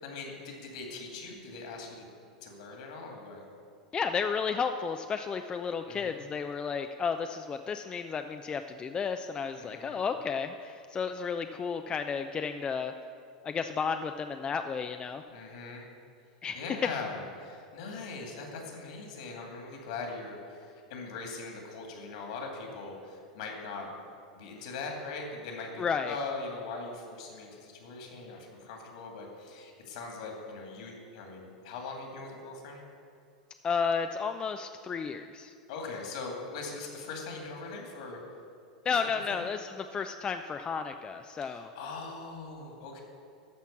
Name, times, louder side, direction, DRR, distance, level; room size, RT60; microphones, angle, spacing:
voice 1, 0.0-2.1 2.4-3.4 5.9-6.2 9.6-10.0 15.3-15.8 16.5-23.9 24.4-32.9 35.7-38.2 39.3-39.5 41.4-43.0, left 3 dB, 65° left, 1 dB, 2.2 m, -41 dB
voice 2, 3.9-12.9 13.4-15.2 16.4-16.6 25.8-26.2 33.6-35.5 38.9-41.7, left 6 dB, 25° left, 7 dB, 0.4 m, -32 dB
12.0 x 4.4 x 7.2 m, 2.4 s
hypercardioid pair, 95°, 4 cm